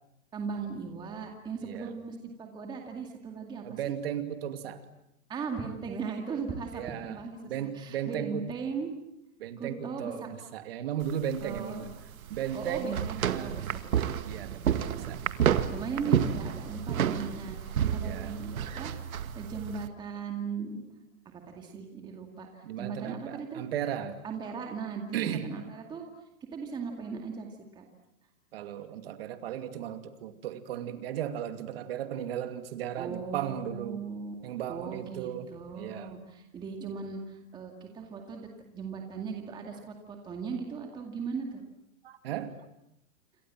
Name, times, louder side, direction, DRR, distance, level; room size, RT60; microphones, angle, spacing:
voice 1, 0.3-3.9 5.3-8.9 9.6-10.3 11.4-11.9 12.5-13.8 15.7-20.8 21.3-23.6 24.2-26.1 26.5-27.9 33.0-34.3 34.7-38.5 38.7-41.6, right 5 dB, 10° right, 3 dB, 2.2 m, -38 dB
voice 2, 1.6-1.9 3.6-4.8 6.7-7.2 7.4-8.4 9.4-11.9 12.3-13.6 14.2-15.2 17.9-18.4 22.6-24.2 25.1-25.5 28.5-34.0 34.4-36.1 42.0-42.6, right 10 dB, 45° right, 8 dB, 2.6 m, -36 dB
sound 1, 11.0-19.9, right 9 dB, 85° right, 2.0 m, -30 dB
28.0 x 26.0 x 7.6 m, 0.83 s
hypercardioid pair, 170°, 42 cm